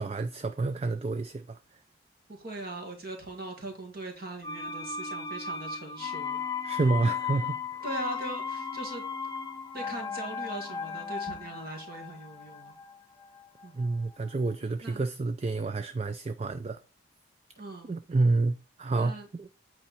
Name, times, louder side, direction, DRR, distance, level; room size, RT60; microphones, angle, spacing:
voice 1, 0.0-1.6 6.6-7.6 13.7-16.8 17.9-19.5, right 3 dB, 30° right, 0.3 m, -29 dB
voice 2, 2.3-6.4 7.8-9.0 9.7-12.7 13.6-13.8 14.8-15.0 17.6-17.9 19.0-19.3, right 2 dB, 50° right, 2.3 m, -40 dB
sound 1, 4.4-14.2 14.4-14.5, left 5 dB, 20° left, 0.6 m, -36 dB
8.5 x 4.5 x 4.3 m
head